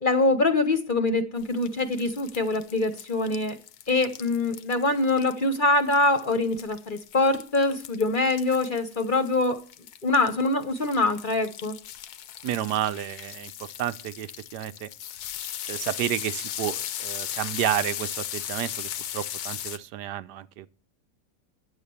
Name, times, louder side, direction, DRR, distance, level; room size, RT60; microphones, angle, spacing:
voice 1, 0.0-3.6 3.9-9.6 10.0-11.7, left 2 dB, 35° left, 1.0 m, -24 dB
sound 1, 1.4-19.8, left 11 dB, 75° left, 1.2 m, -37 dB
voice 2, 12.4-13.5 13.8-14.9 15.7-18.9 19.1-20.7, right 12 dB, 90° right, 1.3 m, -30 dB
10.0 x 7.4 x 7.0 m
omnidirectional pair, 1.7 m